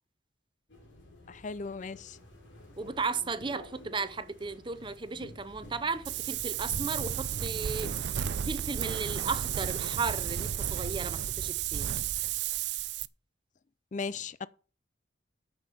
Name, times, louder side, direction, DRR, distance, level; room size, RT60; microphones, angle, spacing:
sound 1, 0.7-11.2, left 1 dB, 85° left, 3.5 m, -51 dB
voice 1, 1.3-2.2 13.9-14.5, left 4 dB, 40° left, 0.5 m, -37 dB
voice 2, 2.8-8.2 8.4-11.9, right 4 dB, 25° right, 0.7 m, -35 dB
Wind, 6.0-13.1, right 10 dB, 65° right, 0.4 m, -33 dB
9.1 x 5.9 x 7.6 m
head